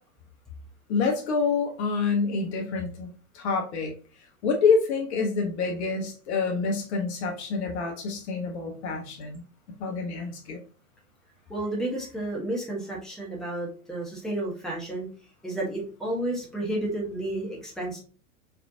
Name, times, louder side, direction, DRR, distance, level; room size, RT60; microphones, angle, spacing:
voice 1, 0.9-3.1 3.3-3.9 4.4-9.4 9.8-10.6, left 4 dB, 50° left, 2 dB, 1.1 m, -27 dB
voice 2, 11.5-15.1 15.4-18.0, right 1 dB, ahead, -3 dB, 1.2 m, -31 dB
4.2 x 3.3 x 2.8 m, 0.38 s
figure-of-eight pair, 100°, 43 cm